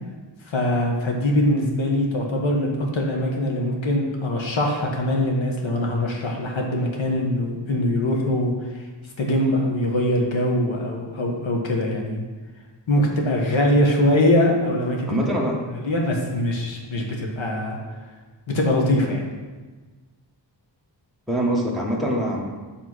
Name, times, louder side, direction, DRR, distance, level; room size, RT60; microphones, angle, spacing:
voice 1, 0.5-8.8 9.2-12.2 12.9-15.2 15.7-17.8 18.5-19.3, left 1 dB, 85° left, 0 dB, 1.4 m, -22 dB
voice 2, 15.1-15.6 21.3-22.4, equal, ahead, -3 dB, 0.9 m, -23 dB
7.4 x 3.6 x 6.1 m, 1.3 s
wide cardioid pair, 135°, 45 cm